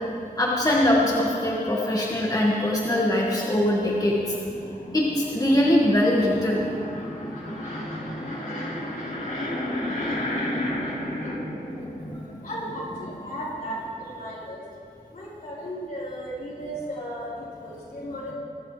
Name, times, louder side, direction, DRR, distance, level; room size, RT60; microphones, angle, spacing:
voice 1, 0.4-4.4 4.9-6.7, left 1 dB, 25° left, -4 dB, 1.9 m, -22 dB
voice 2, 4.2-5.7 6.0-14.7 15.1-18.3, equal, 65° left, -7 dB, 4.4 m, -33 dB
25.5 x 12.0 x 3.4 m, 2.5 s
wide cardioid pair, 70°, 15 cm